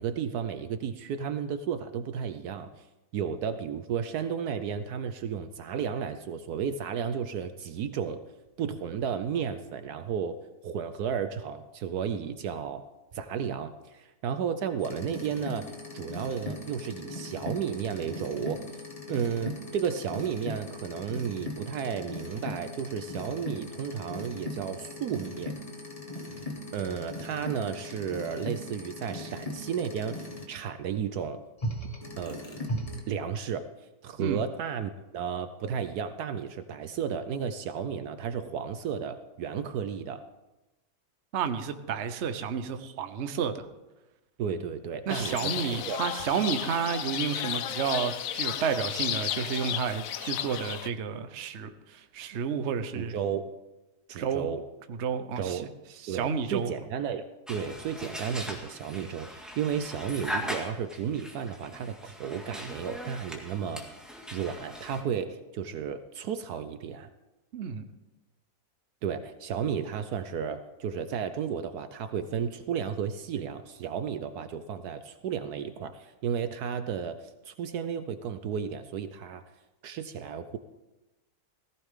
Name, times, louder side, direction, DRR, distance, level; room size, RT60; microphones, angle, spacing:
voice 1, 0.0-2.8 3.1-8.2 8.6-10.4 10.6-12.9 13.1-18.6 19.1-25.5 26.7-31.4 32.2-32.4 33.1-33.7 34.0-40.2 44.4-46.0 52.9-53.5 54.1-54.6 55.4-55.7 56.1-63.9 64.3-67.1 69.0-77.2 77.4-79.4 79.8-80.6, right 7 dB, 70° right, 10 dB, 1.1 m, -33 dB
sound 1, 14.8-30.4 31.6-33.0, left 1 dB, 20° left, 1.6 m, -39 dB
voice 2, 41.3-43.5 45.1-53.1 54.2-54.5 55.0-55.6 56.0-56.7 67.5-67.8, right 7 dB, 50° right, 9 dB, 1.0 m, -31 dB
sound 2, 45.1-50.9, left 10 dB, 65° left, 0.9 m, -33 dB
sound 3, 57.5-65.0, equal, ahead, 1.9 m, -40 dB
17.5 x 15.0 x 3.7 m, 1.0 s
omnidirectional pair, 1.8 m